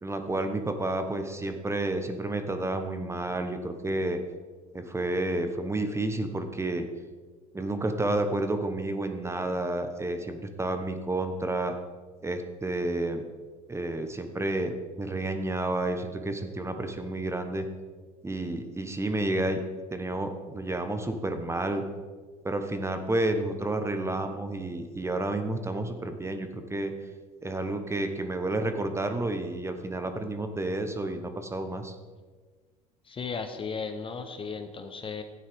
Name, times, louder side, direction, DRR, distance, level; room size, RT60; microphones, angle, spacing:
voice 1, 0.0-4.2 4.7-6.8 7.5-11.7 12.2-13.2 13.7-17.7 18.2-19.6 19.9-21.8 22.4-26.9 27.4-31.9, right 2 dB, 15° right, 7 dB, 1.1 m, -30 dB
voice 2, 33.1-35.2, left 5 dB, 25° left, 7 dB, 1.0 m, -35 dB
12.5 x 9.2 x 3.6 m, 1.4 s
hypercardioid pair, 70°, 20 cm